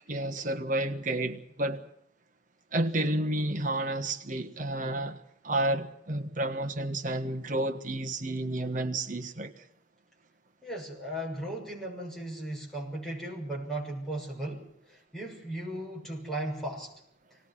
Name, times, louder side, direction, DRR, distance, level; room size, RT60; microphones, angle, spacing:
voice 1, 0.1-1.9 2.7-9.6, right 1 dB, 45° right, 1.5 m, -31 dB
voice 2, 10.6-16.9, right 1 dB, ahead, 6.6 m, -36 dB
25.5 x 19.5 x 6.1 m
head